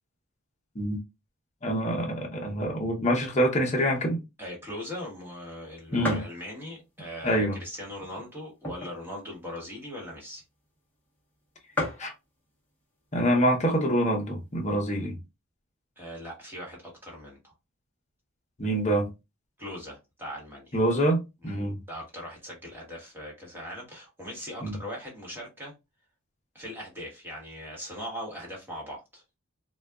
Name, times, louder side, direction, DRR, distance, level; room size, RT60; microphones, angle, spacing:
voice 1, 1.6-4.2 5.9-6.2 7.2-7.6 12.0-12.1 13.1-15.2 18.6-19.1 20.7-21.8 24.6-24.7, equal, 35° left, 0.8 m, -26 dB
voice 2, 4.4-10.4 16.0-17.5 19.6-20.8 21.4-25.7 26.5-29.4, equal, 10° right, 1.3 m, -40 dB
sound 1, 5.1-5.2 5.5-5.6 6.0-6.4 7.0-7.1 7.9-9.1 9.5-9.6 9.7-10.0 10.8-10.9 11.1-11.2 11.4-11.5 11.7-12.1 13.0-13.4 13.9-14.0 14.2-15.0, left 2 dB, 10° left, 1.0 m, -34 dB
4.0 x 2.3 x 2.3 m
head